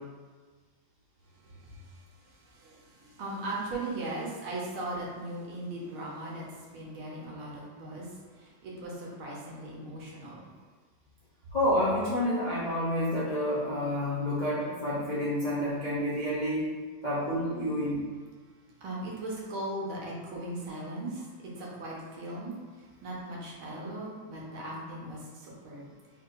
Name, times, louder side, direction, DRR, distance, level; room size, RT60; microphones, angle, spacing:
voice 1, 1.6-2.0 2.5-10.4 18.8-22.6 23.0-25.9, right 1 dB, 80° right, -4 dB, 1.8 m, -38 dB
voice 2, 11.5-16.7 17.0-18.0, left 1 dB, 55° left, -9 dB, 0.5 m, -29 dB
4.6 x 4.3 x 2.5 m, 1.4 s
omnidirectional pair, 2.2 m